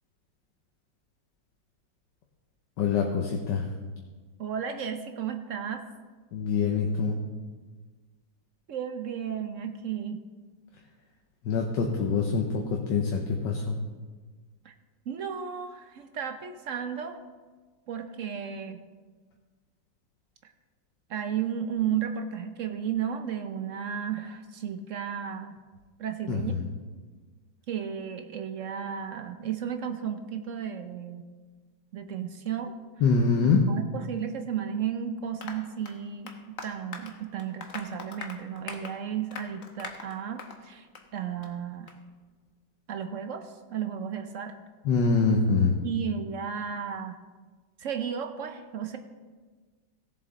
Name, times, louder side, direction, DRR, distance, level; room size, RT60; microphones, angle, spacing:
voice 1, 2.8-3.6 6.3-7.2 11.4-13.7 26.3-26.6 33.0-33.6 44.8-45.7, left 5 dB, 75° left, 1 dB, 1.6 m, -25 dB
voice 2, 4.4-5.8 8.7-10.2 14.6-14.7 15.1-17.2 17.9-18.8 20.4-20.5 21.1-25.6 26.0-26.6 27.7-31.3 31.9-32.7 33.4-40.9 41.1-41.9 42.9-44.6 45.8-47.2 47.8-49.0, right 8 dB, 65° right, 7 dB, 0.8 m, -34 dB
Applause, 35.4-40.6 40.9-41.1 41.4-41.5 41.9-42.0, left 5 dB, 50° left, 1.2 m, -42 dB
17.0 x 7.3 x 3.9 m, 1.4 s
omnidirectional pair, 2.0 m